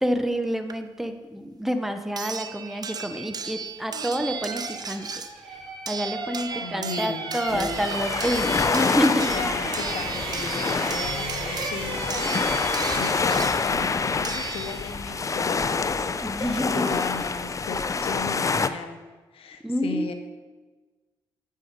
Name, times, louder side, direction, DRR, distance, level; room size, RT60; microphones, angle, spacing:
voice 1, 0.0-5.2 5.9-9.3 16.2-17.1 19.6-20.1, equal, 5° right, 8 dB, 0.8 m, -28 dB
sound 1, 0.7-0.8 2.2-15.2 16.4-16.5 16.8-16.9, right 6 dB, 40° right, 0.6 m, -36 dB
sound 2, 3.7-13.7 13.9-14.1, right 2 dB, 80° right, 2.7 m, -35 dB
voice 2, 6.5-7.9 9.3-19.1 19.3-20.1, left 5 dB, 65° left, 7 dB, 1.0 m, -36 dB
sound 3, 7.5-18.7, left 4 dB, 30° left, 0.5 m, -27 dB
8.4 x 5.6 x 5.1 m, 1.3 s
supercardioid pair, 55°, 10 cm